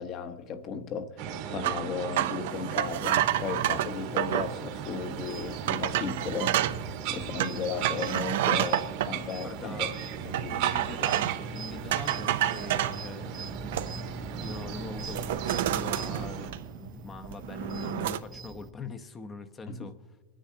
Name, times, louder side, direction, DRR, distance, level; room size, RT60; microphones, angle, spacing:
voice 1, 0.0-6.6 7.1-9.9 10.2-10.6 19.7-19.9, left 6 dB, 40° left, 8 dB, 1.0 m, -35 dB
sound 1, 1.2-16.5, right 8 dB, 55° right, 1.3 m, -38 dB
sound 2, 1.6-4.5 5.1-5.2 5.7-6.8 7.4-9.1 10.3-11.5 11.9-13.0 13.5-14.2 14.5-14.7 15.0-16.9 17.2-18.2, right 12 dB, 75° right, 0.5 m, -29 dB
sound 3, 2.8-18.7, right 3 dB, 15° right, 0.5 m, -44 dB
voice 2, 9.4-10.0 10.4-13.9 14.4-19.9, left 4 dB, 20° left, 9 dB, 0.7 m, -42 dB
26.5 x 10.0 x 2.8 m, 1.4 s
supercardioid pair, 135°, 0 cm